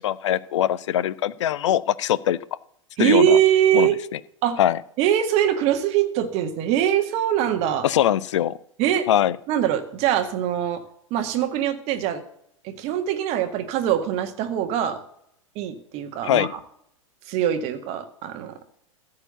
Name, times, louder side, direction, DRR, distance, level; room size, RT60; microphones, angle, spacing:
voice 1, 0.0-2.4 3.0-3.4 3.7-3.9 4.6-4.8 7.8-8.5 9.1-9.3 16.2-16.5, left 11 dB, 60° left, 18 dB, 0.5 m, -21 dB
voice 2, 3.0-4.0 4.4-4.6 5.0-7.9 8.8-9.1 9.5-10.8 11.1-12.2 12.6-15.0 15.5-16.6 17.3-18.5, right 10 dB, 40° right, 7 dB, 1.7 m, -22 dB
14.5 x 4.8 x 8.0 m, 0.72 s
figure-of-eight pair, 95°, 17 cm